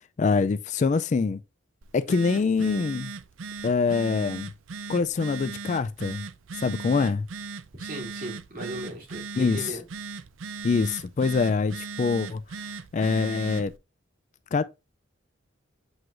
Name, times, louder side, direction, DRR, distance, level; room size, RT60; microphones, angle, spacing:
voice 1, 0.2-1.4 1.9-3.1 3.6-4.5 4.9-6.2 6.6-7.3 9.4-9.8 10.6-12.4 12.9-13.7 14.5-14.6, left 4 dB, 40° left, 0.3 m, -24 dB
Telephone, 1.8-13.8, right 4 dB, 80° right, 0.5 m, -38 dB
voice 2, 7.8-9.8, right 1 dB, 45° right, 3.1 m, -37 dB
7.9 x 4.7 x 2.5 m
head